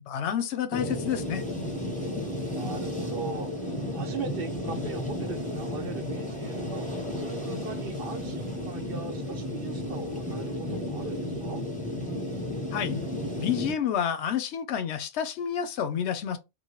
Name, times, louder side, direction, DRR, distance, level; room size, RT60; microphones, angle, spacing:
voice 1, 0.0-1.4 12.7-13.0 13.4-16.4, left 8 dB, 85° left, 0.9 m, -29 dB
sound 1, 0.7-13.7, left 1 dB, 10° left, 0.6 m, -33 dB
voice 2, 2.5-6.9 7.2-11.6, right 5 dB, 60° right, 0.8 m, -40 dB
3.0 x 2.4 x 2.8 m
omnidirectional pair, 1.1 m